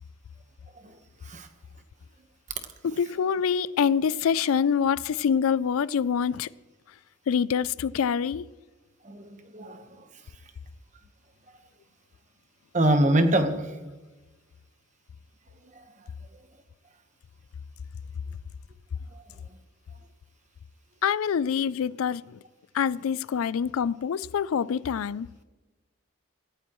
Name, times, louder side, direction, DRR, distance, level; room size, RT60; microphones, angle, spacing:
voice 1, 2.8-6.5 7.3-8.5 21.0-22.4 22.7-25.3, left 7 dB, 85° left, 0.4 m, -25 dB
voice 2, 9.0-10.0 12.7-13.7, right 1 dB, 35° right, 1.2 m, -24 dB
17.0 x 17.0 x 3.1 m
head